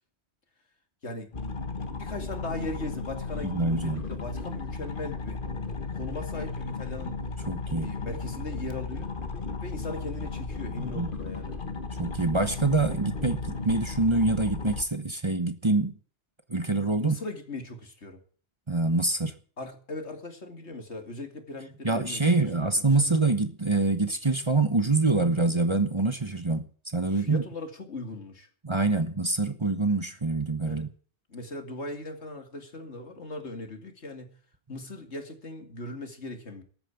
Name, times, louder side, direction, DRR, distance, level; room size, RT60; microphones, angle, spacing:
sound 1, 1.3-14.8, left 4 dB, 50° left, 1.6 m, -35 dB
voice 1, 2.0-5.4 5.9-7.2 7.7-9.1 9.6-11.6 17.0-18.2 19.6-22.2 22.6-23.2 27.1-28.5 30.6-30.9 31.3-34.4 34.7-36.6, left 2 dB, 80° left, 2.7 m, -39 dB
voice 2, 3.4-4.0 7.5-8.0 10.8-11.1 12.0-15.9 16.5-17.1 18.7-19.3 21.8-27.4 28.6-30.9, right 3 dB, 25° right, 1.1 m, -25 dB
13.5 x 9.1 x 8.9 m
omnidirectional pair, 1.1 m